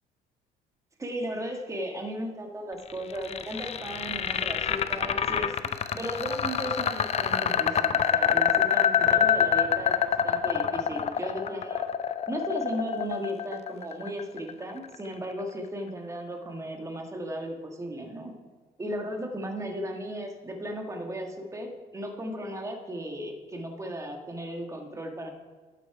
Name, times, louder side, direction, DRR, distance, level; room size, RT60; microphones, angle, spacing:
voice 1, 1.0-11.9 12.3-18.3 18.8-25.3, equal, 20° right, 3 dB, 1.6 m, -36 dB
sound 1, 2.9-15.0, left 8 dB, 40° left, 0.6 m, -26 dB
11.5 x 8.4 x 4.8 m, 1.4 s
cardioid pair, 110°, 17 cm